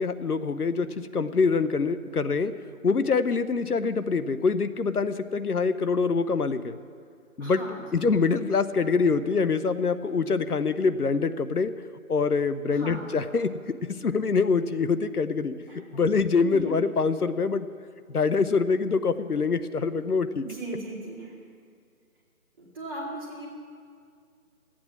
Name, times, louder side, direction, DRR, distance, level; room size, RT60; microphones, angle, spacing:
voice 1, 0.0-2.5 2.8-6.8 7.4-7.6 7.9-11.7 12.1-13.7 14.0-15.5 15.9-17.7 18.1-20.4, left 4 dB, 85° left, 12 dB, 0.8 m, -25 dB
voice 2, 7.4-7.9 12.7-13.0 15.7-16.0 16.4-16.7 20.4-21.3 22.6-23.5, right 1 dB, 15° right, -6 dB, 2.1 m, -38 dB
14.0 x 8.7 x 7.4 m, 2.2 s
figure-of-eight pair, 155°, 44 cm